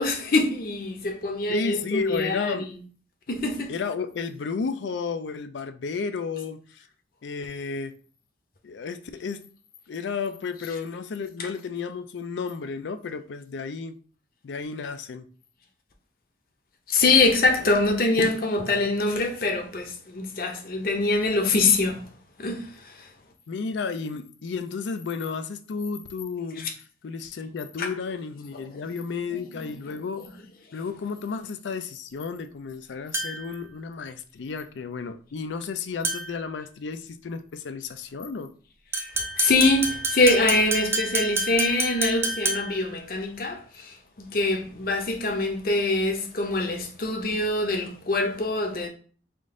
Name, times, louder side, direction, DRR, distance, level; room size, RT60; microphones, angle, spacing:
voice 1, 0.0-2.7 3.3-3.7 16.9-22.1 22.4-23.1 26.6-26.7 27.8-27.9 29.5-30.3 38.9-48.9, left 2 dB, 50° left, 0.7 m, -24 dB
voice 2, 1.5-2.7 3.7-6.8 7.2-7.9 8.6-9.4 9.9-14.0 14.4-15.3 17.6-17.7 23.5-26.7 27.0-30.2 30.7-38.5, left 5 dB, 80° left, 0.4 m, -32 dB
sound 1, 33.1-33.6 36.0-36.5 38.9-42.9, right 2 dB, 15° right, 0.4 m, -29 dB
3.6 x 2.5 x 3.7 m
head